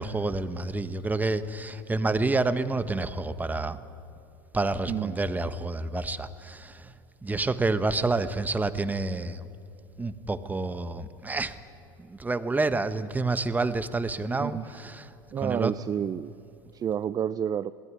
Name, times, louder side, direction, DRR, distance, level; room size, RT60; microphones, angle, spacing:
voice 1, 0.0-3.8 4.5-6.8 7.2-9.5 10.0-11.5 12.0-15.1 15.4-15.7, right 3 dB, 15° right, 11 dB, 1.3 m, -28 dB
voice 2, 14.4-14.8 15.3-16.3 16.7-17.7, right 9 dB, 30° right, 14 dB, 0.5 m, -29 dB
21.5 x 18.0 x 9.9 m, 2.5 s
hypercardioid pair, 80°, 12 cm